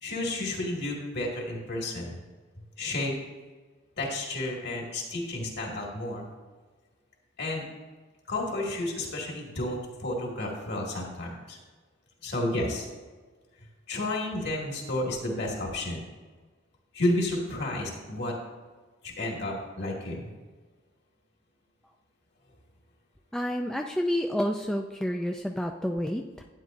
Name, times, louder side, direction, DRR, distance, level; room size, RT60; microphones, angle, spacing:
voice 1, 0.0-2.2 2.8-3.1 4.0-6.3 7.4-7.6 8.3-11.6 12.2-12.9 13.9-16.0 16.9-18.3 19.0-20.2, left 1 dB, 55° left, -1 dB, 2.2 m, -31 dB
voice 2, 23.3-26.4, equal, 5° left, 2 dB, 0.3 m, -29 dB
12.0 x 9.4 x 2.6 m, 1.4 s
head